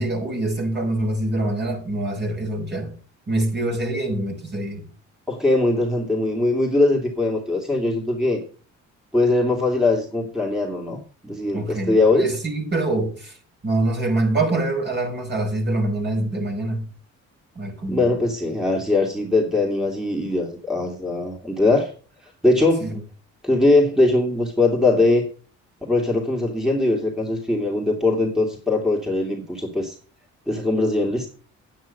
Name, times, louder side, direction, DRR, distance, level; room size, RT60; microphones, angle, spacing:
voice 1, 0.0-2.9 3.3-4.9 11.5-13.4 13.6-16.9 17.5-18.1 22.8-23.0, right 2 dB, 35° right, 5.2 m, -25 dB
voice 2, 5.3-8.4 9.1-11.0 11.2-12.3 17.9-21.9 22.4-22.9 23.4-25.3 25.8-30.0 30.5-31.3, left 2 dB, ahead, 2.6 m, -21 dB
9.9 x 9.4 x 5.5 m
cardioid pair, 90°, 30 cm